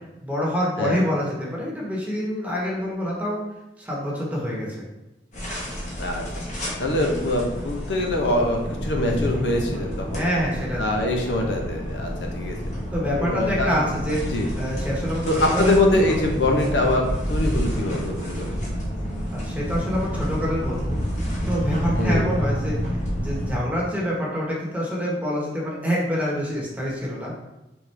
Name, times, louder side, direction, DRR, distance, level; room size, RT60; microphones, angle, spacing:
voice 1, 0.2-3.4 3.8-4.9 10.1-10.8 12.9-14.2 14.6-15.2 15.5-16.2 19.3-21.0 21.4-22.8 23.2-27.3, equal, 10° right, -4 dB, 1.1 m, -26 dB
sound 1, 5.3-23.5, equal, 45° left, 1.2 m, -29 dB
voice 2, 6.8-10.3 10.8-12.6 13.2-13.9 14.3-14.5 15.3-18.6 22.0-22.3, left 1 dB, 80° left, 1 dB, 0.8 m, -24 dB
4.4 x 3.7 x 3.3 m, 1.0 s
head